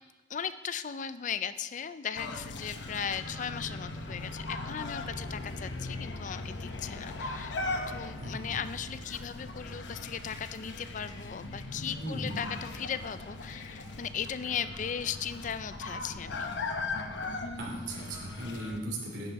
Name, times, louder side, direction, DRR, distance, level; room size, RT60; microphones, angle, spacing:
voice 1, 0.3-7.6 7.9-16.6, left 7 dB, 45° left, 13 dB, 0.4 m, -37 dB
sound 1, 2.2-18.8, left 2 dB, 80° left, 0.9 m, -39 dB
voice 2, 8.2-8.6 12.0-12.5 17.6-19.3, right 1 dB, 80° right, -2 dB, 2.7 m, -37 dB
10.5 x 9.0 x 4.1 m, 1.1 s
head